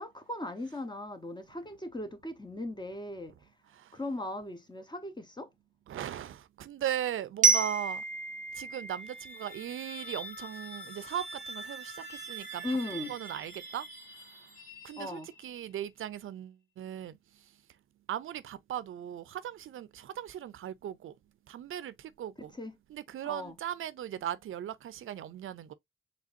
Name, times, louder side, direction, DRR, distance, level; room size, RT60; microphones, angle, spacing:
voice 1, 0.0-3.3 3.9-5.5 12.6-13.2 15.0-15.3 22.4-22.8 23.2-23.6, left 1 dB, 20° left, 1.1 m, -38 dB
voice 2, 5.9-8.0 8.5-12.6 13.1-13.9 14.8-17.2 18.1-21.1 21.5-22.5 22.9-25.7, right 11 dB, 80° right, 0.5 m, -38 dB
Glockenspiel, 7.4-10.3, right 5 dB, 40° right, 0.6 m, -30 dB
sound 1, 8.9-15.6, right 2 dB, 50° left, 3.1 m, -45 dB
5.0 x 3.4 x 2.6 m
cardioid pair, 55°, 21 cm